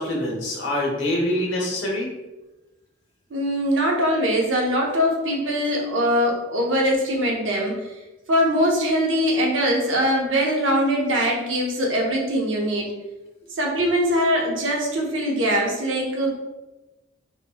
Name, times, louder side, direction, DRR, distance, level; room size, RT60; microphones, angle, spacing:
voice 1, 0.0-2.1, left 1 dB, 70° left, -2 dB, 0.9 m, -25 dB
voice 2, 3.3-7.9 8.3-12.9 13.5-16.3, equal, 75° right, 0 dB, 0.7 m, -22 dB
3.4 x 2.9 x 2.2 m, 1.1 s
head